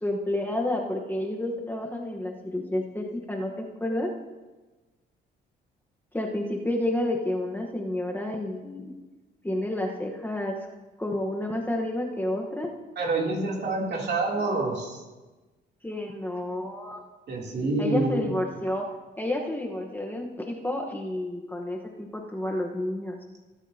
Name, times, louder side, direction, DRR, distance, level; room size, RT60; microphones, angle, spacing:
voice 1, 0.0-3.5 3.8-4.1 6.1-9.0 9.4-10.6 11.0-12.7 15.8-17.0 17.8-18.9 19.2-23.2, left 1 dB, 10° left, 1 dB, 1.1 m, -30 dB
voice 2, 13.0-15.0 17.3-18.2, right 2 dB, 60° right, -2 dB, 3.0 m, -27 dB
18.5 x 8.3 x 2.8 m, 1.2 s
cardioid pair, 90°, 20 cm